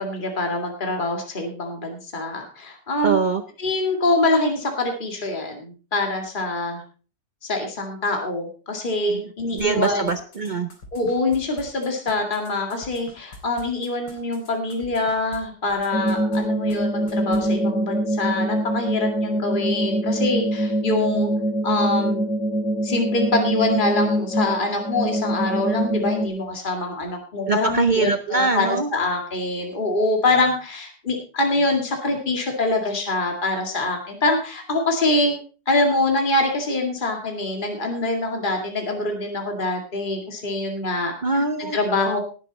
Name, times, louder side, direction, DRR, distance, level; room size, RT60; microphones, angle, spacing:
voice 1, 0.0-3.2 3.6-6.8 7.4-10.1 10.9-21.3 21.6-22.3 22.8-35.3 35.7-41.1 41.7-42.2, left 2 dB, 30° left, 3 dB, 2.3 m, -24 dB
voice 2, 3.0-3.4 9.1-9.2 9.5-10.7 27.5-28.9 41.2-41.8, right 4 dB, 65° right, 9 dB, 0.4 m, -22 dB
sound 1, 9.6-15.4 15.7-16.4 16.7-16.8 17.1-17.5, left 2 dB, 70° left, 3.9 m, -44 dB
sound 2, 15.9-26.3, right 1 dB, 50° left, 3.4 m, -24 dB
17.5 x 7.5 x 4.1 m, 0.37 s
omnidirectional pair, 1.9 m